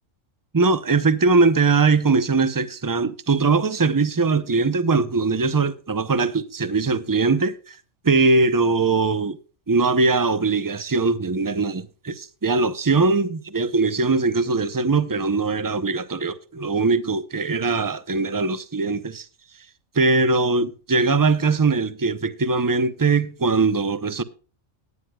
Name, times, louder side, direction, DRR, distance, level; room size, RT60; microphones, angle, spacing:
voice 1, 0.5-7.8 8.0-9.4 9.7-19.3 19.9-24.2, right 3 dB, 25° right, 0.5 m, -21 dB
19.0 x 9.6 x 2.3 m
omnidirectional pair, 1.3 m